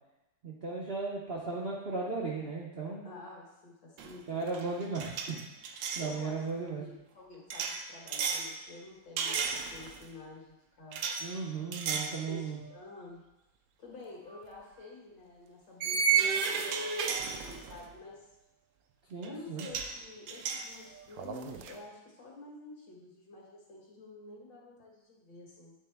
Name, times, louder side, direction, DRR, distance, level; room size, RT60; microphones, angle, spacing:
voice 1, 0.4-3.1 4.3-5.2 5.9-6.8 11.2-12.6 19.1-19.7, right 4 dB, 55° right, -3 dB, 0.6 m, -36 dB
voice 2, 3.0-4.4 6.0-6.4 6.7-11.0 12.3-13.2 13.8-18.2 19.2-25.7, left 3 dB, 70° left, -3 dB, 2.3 m, -49 dB
sound 1, 4.0-4.2 4.5-6.1 7.5-8.5 9.2-10.0 10.9-11.2 11.7-12.2 12.6-12.8 14.3-14.4 15.8-17.9 19.2-19.3 19.6-19.9 20.3-21.7, right 6 dB, 80° right, 1.3 m, -33 dB
9.5 x 3.8 x 3.4 m, 0.95 s
omnidirectional pair, 2.0 m